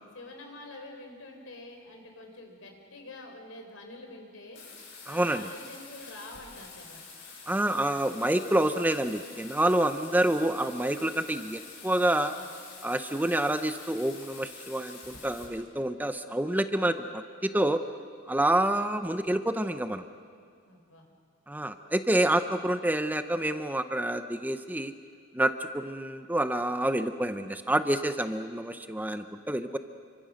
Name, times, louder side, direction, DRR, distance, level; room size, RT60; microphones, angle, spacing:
voice 1, 0.1-4.6 5.1-7.0 12.3-12.5 20.7-21.1, left 2 dB, 85° left, 3 dB, 4.2 m, -46 dB
Bathtub (filling or washing), 4.5-15.4, left 4 dB, 60° left, 6.3 m, -47 dB
voice 2, 5.1-5.5 7.5-12.4 12.8-17.8 18.3-20.1 21.5-24.9 25.3-29.8, right 1 dB, 10° right, 9 dB, 0.7 m, -28 dB
27.5 x 25.0 x 6.4 m, 2.2 s
head